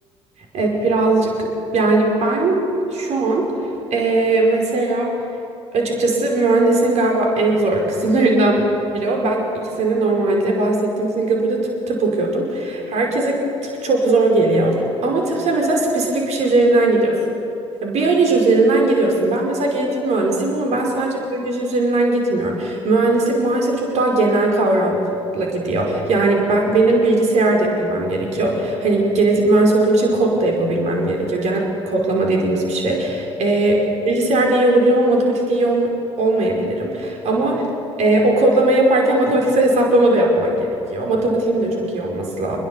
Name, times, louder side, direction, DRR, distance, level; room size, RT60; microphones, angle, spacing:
voice 1, 0.5-2.6 2.9-3.5 3.9-5.2 5.7-11.6 11.9-14.8 15.0-17.2 17.8-25.0 25.3-35.9 36.2-37.7 38.0-42.6, right 2 dB, 50° right, 0 dB, 5.2 m, -18 dB
27.5 x 21.0 x 7.2 m, 2.8 s
figure-of-eight pair, 55°, 15 cm